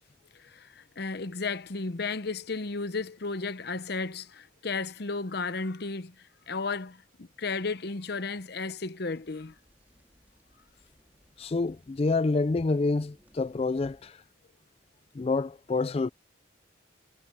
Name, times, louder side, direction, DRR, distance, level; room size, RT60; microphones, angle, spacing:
voice 1, 0.3-9.5, left 4 dB, 55° left, 0.7 m, -34 dB
sound 1, 9.1-14.1, equal, 10° right, 4.5 m, -63 dB
voice 2, 11.4-14.2 15.1-16.1, left 3 dB, 30° left, 0.3 m, -27 dB
head